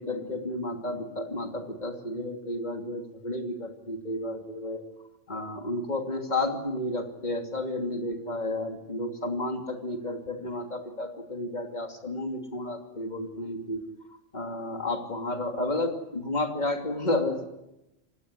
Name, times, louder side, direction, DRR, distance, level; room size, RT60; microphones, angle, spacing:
voice 1, 0.0-4.8 5.3-13.8 14.3-17.4, left 2 dB, 35° left, 4 dB, 2.9 m, -32 dB
27.5 x 19.0 x 9.6 m, 0.94 s
omnidirectional pair, 1.3 m